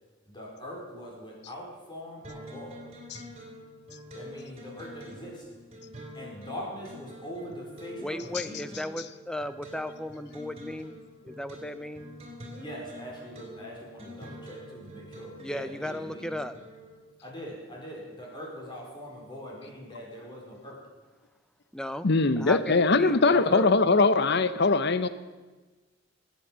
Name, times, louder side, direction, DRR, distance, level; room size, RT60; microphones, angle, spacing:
voice 1, 0.2-2.9 4.1-5.5 6.1-8.6 12.6-16.4 17.2-20.8, equal, 25° left, -2 dB, 4.8 m, -42 dB
sound 1, 2.2-17.0, equal, 35° right, 3.5 m, -46 dB
voice 2, 8.0-11.0 11.2-12.1 15.4-16.6 21.7-22.1 22.4-23.7, left 1 dB, 5° left, 12 dB, 0.7 m, -35 dB
voice 3, 22.0-25.1, left 3 dB, 60° left, 13 dB, 0.8 m, -22 dB
19.5 x 8.6 x 7.6 m, 1.3 s
head